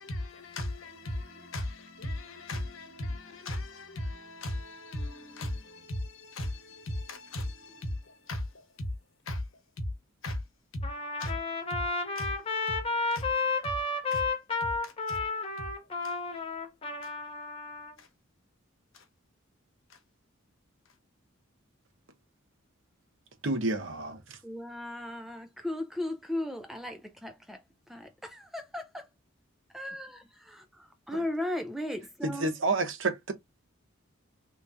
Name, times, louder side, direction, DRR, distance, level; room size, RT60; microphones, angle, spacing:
voice 1, 0.0-8.9 9.2-9.8 10.2-10.4 10.7-10.8 11.2-11.4 12.1-12.3 13.1-13.3 14.1-14.3 14.8-15.2 16.0-16.2 17.0-17.1 18.0-18.1 18.9-19.1 19.9-20.0 20.9-21.0, left 1 dB, 70° left, 1.0 m, -37 dB
Trumpet, 10.8-17.9, left 3 dB, 25° left, 0.7 m, -32 dB
voice 2, 23.4-24.4 31.1-31.2 32.2-33.3, right 3 dB, 60° right, 0.8 m, -30 dB
voice 3, 24.4-29.1 29.7-32.5, left 1 dB, ahead, 0.3 m, -37 dB
3.4 x 3.0 x 2.5 m
head